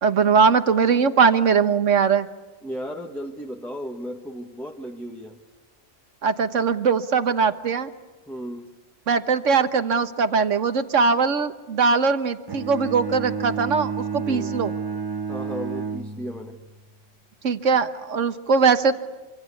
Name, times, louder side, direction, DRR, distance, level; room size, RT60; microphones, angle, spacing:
voice 1, 0.0-2.3 6.2-7.9 9.1-14.7 17.4-18.9, right 5 dB, 75° right, 10 dB, 1.5 m, -20 dB
voice 2, 2.6-5.4 8.3-8.7 14.2-14.5 15.3-16.6, equal, ahead, 1 dB, 1.6 m, -35 dB
Bowed string instrument, 12.5-16.7, right 6 dB, 20° right, 0.9 m, -30 dB
26.5 x 25.5 x 8.4 m, 1.2 s
omnidirectional pair, 1.3 m